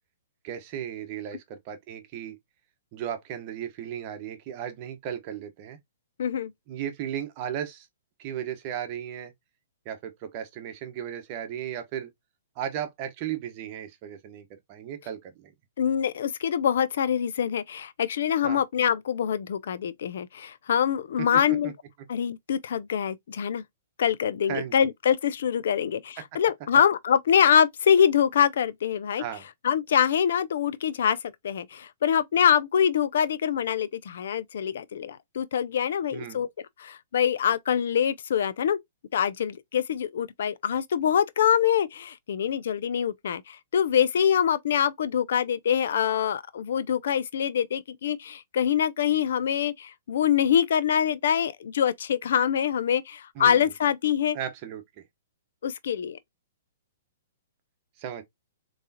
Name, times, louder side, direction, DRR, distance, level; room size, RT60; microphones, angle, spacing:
voice 1, 0.4-2.4 2.9-5.8 6.7-7.9 8.2-9.3 9.8-12.1 12.6-15.5 18.4-18.6 21.2-21.7 24.5-24.7 29.2-29.4 36.1-36.4 53.3-53.7 54.3-55.0 58.0-58.2, right 10 dB, 40° right, 1.0 m, -35 dB
voice 2, 6.2-6.5 15.8-21.7 22.1-23.6 24.0-29.2 29.6-31.2 31.4-36.5 36.8-38.8 39.1-54.4 55.6-56.2, left 8 dB, 65° left, 0.4 m, -24 dB
3.6 x 3.0 x 2.7 m
hypercardioid pair, 130°, 0 cm